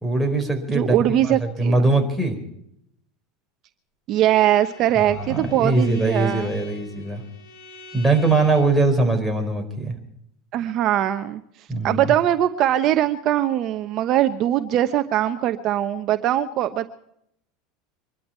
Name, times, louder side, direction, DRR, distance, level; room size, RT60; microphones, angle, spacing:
voice 1, 0.0-1.0 1.2-2.3 5.1-7.2 7.9-9.9 11.7-12.1, right 2 dB, ahead, 6 dB, 4.2 m, -21 dB
voice 2, 0.7-1.8 4.1-6.5 10.5-11.4 11.8-16.9, right 12 dB, 45° right, 9 dB, 0.9 m, -21 dB
Bowed string instrument, 4.1-8.8, left 1 dB, 75° left, 5.0 m, -44 dB
24.5 x 12.5 x 4.5 m, 0.74 s
supercardioid pair, 135°, 0 cm